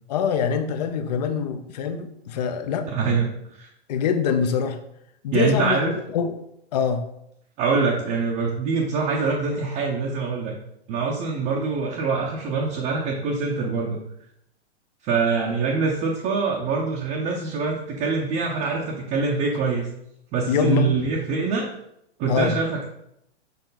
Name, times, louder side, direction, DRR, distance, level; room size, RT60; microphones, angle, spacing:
voice 1, 0.1-2.9 3.9-4.8 5.2-5.8 6.1-6.4 6.7-7.0 20.5-20.9 22.3-22.6, left 7 dB, 35° left, 9 dB, 0.6 m, -24 dB
voice 2, 2.9-3.7 5.3-5.9 7.6-10.5 10.9-14.0 15.0-19.9 20.3-21.6 22.2-22.9, right 4 dB, 20° right, -2 dB, 0.7 m, -24 dB
6.8 x 4.5 x 4.0 m, 0.77 s
hypercardioid pair, 155°, 35 cm